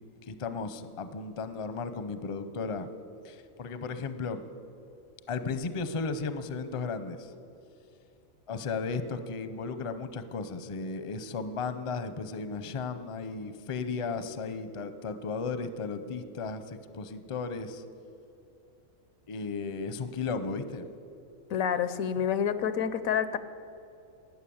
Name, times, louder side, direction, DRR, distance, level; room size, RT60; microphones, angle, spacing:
voice 1, 0.3-2.9 3.2-4.4 5.3-7.3 8.5-17.8 19.3-20.9, left 4 dB, 40° left, 11 dB, 0.5 m, -35 dB
voice 2, 21.5-23.4, left 8 dB, 90° left, 14 dB, 1.1 m, -28 dB
13.0 x 9.2 x 8.6 m, 2.6 s
omnidirectional pair, 1.4 m